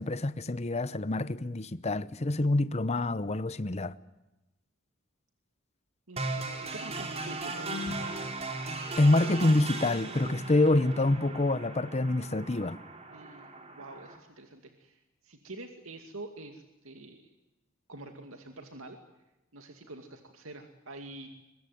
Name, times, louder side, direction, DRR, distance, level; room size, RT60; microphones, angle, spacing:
voice 1, 0.0-3.9 9.0-12.8, left 2 dB, 30° left, 0.8 m, -26 dB
voice 2, 6.1-8.2 13.1-17.3 17.9-19.0 19.5-21.3, right 2 dB, 85° right, 2.4 m, -46 dB
sound 1, 6.2-14.2, right 2 dB, 30° right, 3.9 m, -37 dB
23.5 x 22.0 x 9.4 m
head